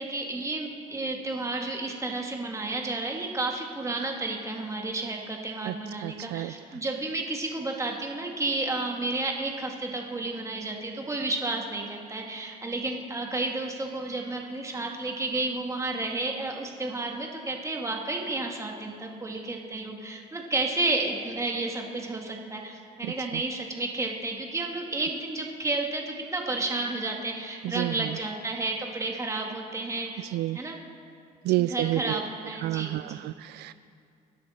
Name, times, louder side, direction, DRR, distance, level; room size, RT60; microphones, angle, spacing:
voice 1, 0.0-30.8 31.6-33.3, right 2 dB, 15° right, 1 dB, 2.0 m, -31 dB
voice 2, 6.0-6.5 23.0-23.4 27.6-28.2 30.3-30.6 31.4-32.2 32.6-33.7, right 16 dB, 80° right, 14 dB, 0.4 m, -29 dB
24.5 x 10.5 x 4.3 m, 2.4 s
cardioid pair, 110°, 17 cm